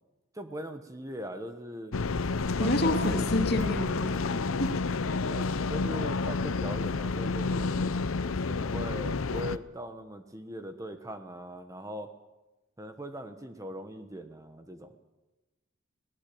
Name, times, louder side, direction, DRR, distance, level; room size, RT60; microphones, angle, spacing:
voice 1, 0.3-1.9 2.6-3.2 5.1-7.9 8.5-12.1 12.8-14.9, equal, 15° right, 7 dB, 1.3 m, -40 dB
sound 1, 1.9-9.6, left 4 dB, 80° left, 0.7 m, -30 dB
voice 2, 2.6-4.7 5.0-5.2, left 1 dB, 50° left, 4 dB, 2.9 m, -29 dB
22.5 x 18.5 x 8.7 m, 1.1 s
head